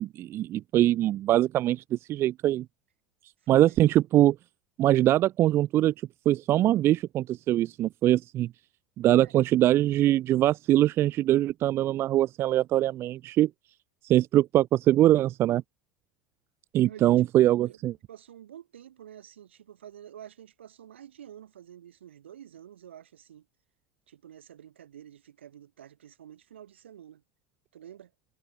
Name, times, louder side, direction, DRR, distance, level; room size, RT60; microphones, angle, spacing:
voice 1, 0.0-2.7 3.5-4.4 4.8-5.9 6.3-8.5 9.0-13.5 14.0-15.6 16.7-17.9, right 13 dB, 40° right, 0.4 m, -23 dB
voice 2, 3.4-3.8 9.2-9.3 16.8-17.2 17.6-17.8 18.1-23.4 24.1-27.2 27.7-28.1, right 10 dB, 75° right, 4.7 m, -49 dB
figure-of-eight pair, 75°, 6 cm